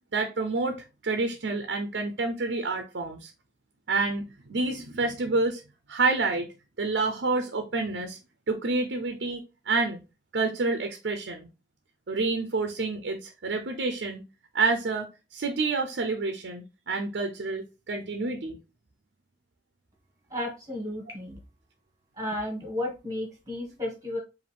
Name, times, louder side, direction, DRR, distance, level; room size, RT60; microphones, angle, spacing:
voice 1, 0.1-3.3 3.9-5.6 5.9-6.5 6.8-8.2 8.5-10.0 10.3-11.5 12.1-14.2 14.5-18.6, right 3 dB, 70° right, 0.6 m, -28 dB
voice 2, 20.3-21.4 22.2-24.2, left 1 dB, 20° right, 1.7 m, -33 dB
5.0 x 2.6 x 3.4 m
head